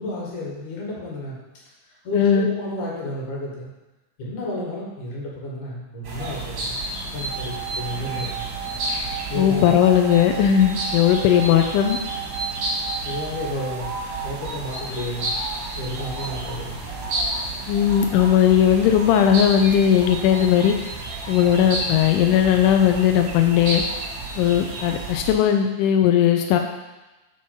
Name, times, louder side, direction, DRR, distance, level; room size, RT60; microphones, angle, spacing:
voice 1, 0.0-1.4 1.8-3.7 4.2-6.8 7.1-8.5 9.3-9.8 13.0-14.0 14.2-15.3 15.8-16.9, left 1 dB, 65° left, -5 dB, 3.1 m, -31 dB
voice 2, 2.1-2.5 9.4-12.0 17.7-20.8 21.3-23.8 24.4-26.6, left 9 dB, 85° left, 4 dB, 1.8 m, -18 dB
sound 1, 6.0-25.3, right 2 dB, 70° right, 1.1 m, -31 dB
sound 2, 7.3-14.3, right 13 dB, 85° right, 2.3 m, -35 dB
6.3 x 4.2 x 5.9 m, 1.1 s
omnidirectional pair, 4.0 m